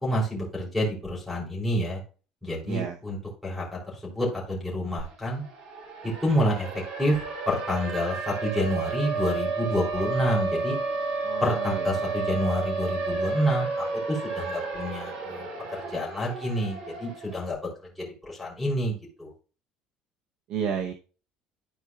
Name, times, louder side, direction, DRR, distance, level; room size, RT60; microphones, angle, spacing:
voice 1, 0.0-2.0 2.4-3.2 3.4-3.6 4.0-5.4 6.0-6.7 7.0-7.2 7.5-10.8 11.4-13.7 14.1-15.5 15.9-17.6 18.0-19.3, equal, ahead, -2 dB, 3.2 m, -28 dB
voice 2, 2.7-3.0 11.2-12.1 20.5-20.9, right 7 dB, 55° right, 4 dB, 0.8 m, -32 dB
Siren, 5.0-5.1 5.4-17.4, right 3 dB, 70° right, 1.9 m, -31 dB
13.0 x 4.5 x 2.3 m, 0.36 s
cardioid pair, 175°, 2 cm